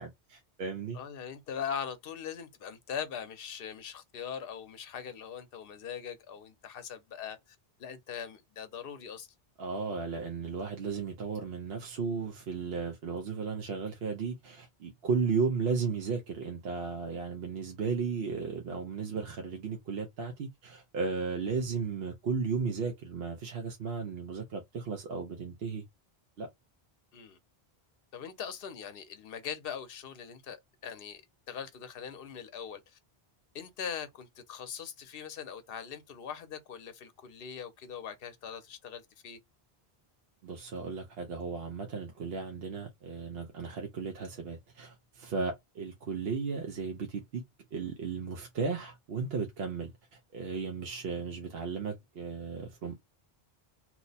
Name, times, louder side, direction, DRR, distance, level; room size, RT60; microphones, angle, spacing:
voice 1, 0.0-1.0 9.6-25.8 26.4-26.5 40.4-47.4 47.7-53.0, right 5 dB, 75° right, 0.9 m, -35 dB
voice 2, 0.9-9.3 27.1-27.4 28.1-31.2 31.5-33.0 33.5-39.4, left 7 dB, 65° left, 0.8 m, -41 dB
2.9 x 2.1 x 4.0 m
omnidirectional pair, 1.0 m